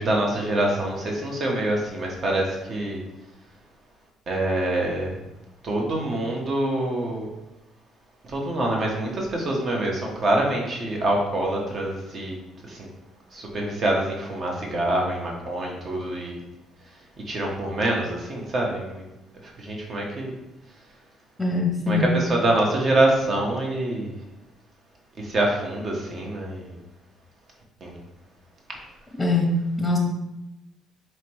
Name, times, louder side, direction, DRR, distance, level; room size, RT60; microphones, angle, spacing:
voice 1, 0.0-3.0 4.3-5.2 5.6-7.3 8.3-12.4 12.7-12.9 13.3-16.4 17.3-19.0 19.6-20.3 21.9-24.1 25.2-26.7 27.8-28.0, right 1 dB, 45° right, -1 dB, 1.1 m, -25 dB
voice 2, 21.4-22.2 29.2-30.0, left 2 dB, 10° left, 1 dB, 0.8 m, -23 dB
4.3 x 3.1 x 3.0 m, 0.93 s
supercardioid pair, 70°, 0 cm